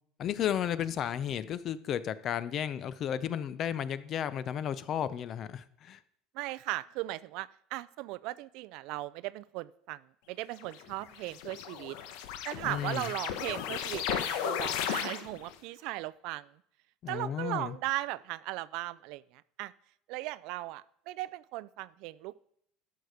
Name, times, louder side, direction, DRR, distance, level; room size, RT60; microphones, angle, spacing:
voice 1, 0.2-6.0 12.6-13.1 17.0-17.8, left 9 dB, 35° left, 0.5 m, -33 dB
voice 2, 6.3-10.0 10.3-12.0 12.4-16.5 17.1-19.2 19.6-19.7 20.1-22.5, right 18 dB, 60° right, 0.4 m, -37 dB
sound 1, 10.6-15.5, left 10 dB, 75° left, 1.0 m, -35 dB
12.5 x 6.6 x 4.9 m
cardioid pair, 160°, 0 cm